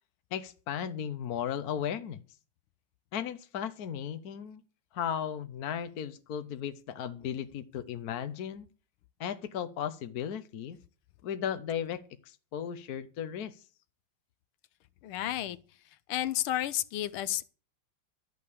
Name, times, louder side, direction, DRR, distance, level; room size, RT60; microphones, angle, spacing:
voice 1, 0.3-2.2 3.1-4.6 4.9-8.7 9.2-10.8 11.2-12.0 12.3-13.5, left 9 dB, 55° left, 1.1 m, -35 dB
voice 2, 15.0-15.6 16.1-17.4, left 13 dB, 80° left, 1.6 m, -31 dB
12.5 x 6.6 x 8.4 m
omnidirectional pair, 2.4 m